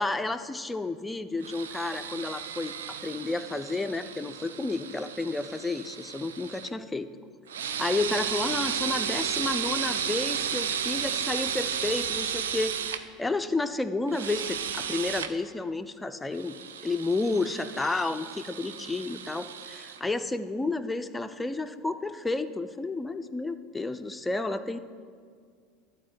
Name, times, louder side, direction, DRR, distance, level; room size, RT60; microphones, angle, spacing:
voice 1, 0.0-7.1 7.8-12.7 13.2-16.5 16.8-24.8, left 3 dB, 10° left, 10 dB, 0.5 m, -31 dB
sound 1, 1.4-6.7 7.5-13.0 14.1-15.3 16.3-20.0, right 8 dB, 80° right, 0.5 m, -33 dB
12.0 x 4.1 x 7.7 m, 2.1 s
hypercardioid pair, 80°, 0 cm